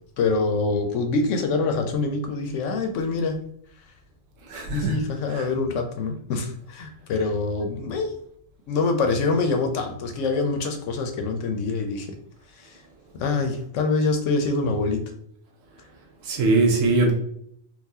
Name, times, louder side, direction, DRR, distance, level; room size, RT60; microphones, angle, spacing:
voice 1, 0.2-3.3 4.7-8.1 8.7-12.1 12.6-12.8 13.1-15.0, left 3 dB, 70° left, 5 dB, 0.9 m, -25 dB
voice 2, 4.5-5.0 5.3-5.5 16.2-17.1, right 3 dB, 75° right, 1 dB, 1.1 m, -21 dB
4.0 x 2.3 x 2.7 m, 0.68 s
omnidirectional pair, 1.4 m